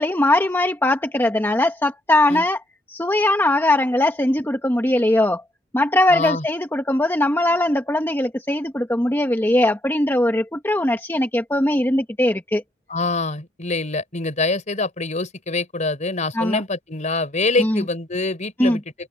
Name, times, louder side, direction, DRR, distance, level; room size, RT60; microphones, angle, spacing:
voice 1, 0.0-2.6 2.9-5.4 5.7-12.6 16.3-16.6 17.6-17.8 18.6-18.8, left 1 dB, 10° left, 1.2 m, -20 dB
voice 2, 6.1-6.4 12.9-18.8, left 3 dB, 40° left, 3.8 m, -25 dB
head